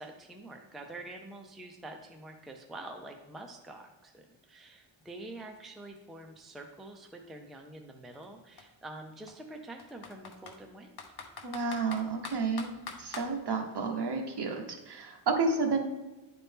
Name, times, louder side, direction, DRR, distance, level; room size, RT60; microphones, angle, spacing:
voice 1, 0.0-10.9, right 2 dB, ahead, 3 dB, 0.5 m, -46 dB
Computer keyboard, 5.0-5.1 5.4-7.4 8.1-8.3 8.6-8.7 9.3-10.6 11.0-13.3, left 5 dB, 55° left, 0.9 m, -44 dB
voice 2, 11.4-12.7 13.0-15.9, right 4 dB, 55° right, 3 dB, 1.2 m, -31 dB
10.5 x 4.3 x 3.5 m, 1.1 s
wide cardioid pair, 135°, 48 cm